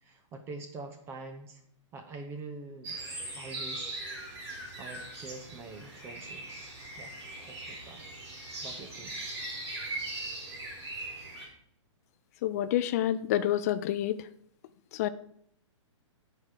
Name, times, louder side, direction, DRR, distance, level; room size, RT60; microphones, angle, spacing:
voice 1, 0.0-1.6 1.9-3.0 3.2-4.0 4.8-7.2 7.5-8.0 8.6-9.2, right 3 dB, 15° right, 5 dB, 0.6 m, -45 dB
sound 1, 2.8-11.5, right 2 dB, 55° right, 3.5 m, -40 dB
voice 2, 12.4-14.2 14.9-15.1, left 12 dB, 30° left, 13 dB, 0.4 m, -28 dB
9.6 x 4.9 x 4.5 m, 0.68 s
hypercardioid pair, 160°, 16 cm